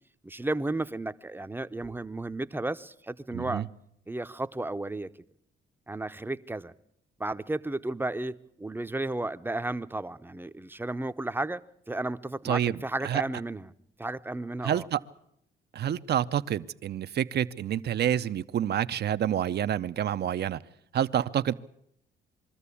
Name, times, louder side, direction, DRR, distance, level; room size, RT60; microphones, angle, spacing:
voice 1, 0.2-3.6 4.1-5.1 5.9-6.7 7.2-13.7 14.0-14.9, right 2 dB, 10° right, 0.7 m, -33 dB
voice 2, 3.3-3.7 12.4-13.2 14.6-15.0 15.7-20.6 20.9-21.5, right 10 dB, 55° right, 0.7 m, -28 dB
22.5 x 13.5 x 8.5 m
cardioid pair, 90°, 20 cm